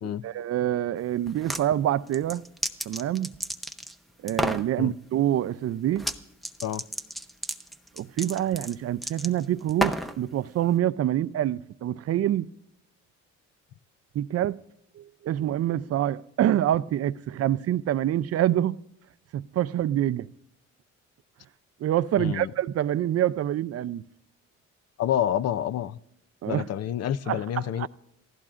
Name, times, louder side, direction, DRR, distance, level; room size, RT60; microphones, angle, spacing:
voice 1, 0.2-2.4 2.9-3.3 4.2-6.1 8.0-12.5 14.1-14.6 15.0-18.8 19.3-20.3 21.8-24.0 26.4-26.7 27.3-27.9, right 12 dB, 55° right, 0.5 m, -26 dB
sound 1, 1.3-1.6 2.1-3.9 4.3-4.7 6.0-6.2 6.4-10.2, equal, ahead, 0.7 m, -31 dB
voice 2, 22.2-22.5 25.0-26.0 26.5-27.9, left 10 dB, 55° left, 0.5 m, -28 dB
28.5 x 15.0 x 2.5 m
cardioid pair, 90°, 30 cm